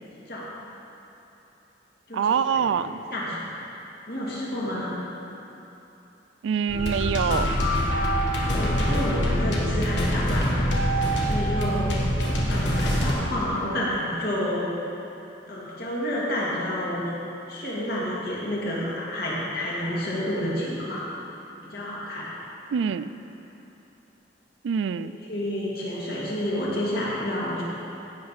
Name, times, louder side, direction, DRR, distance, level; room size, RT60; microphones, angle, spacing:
voice 1, 0.1-0.5 2.1-2.3 2.7-2.8 3.1-3.5 4.1-4.9 8.4-10.6 11.2-12.0 12.5-14.7 15.5-17.1 17.5-21.1 21.6-22.3 25.3-27.6, left 1 dB, 55° left, -6 dB, 2.4 m, -29 dB
voice 2, 2.1-3.0 6.4-7.5 22.7-23.1 24.6-25.1, right 7 dB, 85° right, 13 dB, 0.3 m, -25 dB
sound 1, 6.7-13.1, equal, 75° left, 1.6 m, -24 dB
16.0 x 5.7 x 4.8 m, 3.0 s
head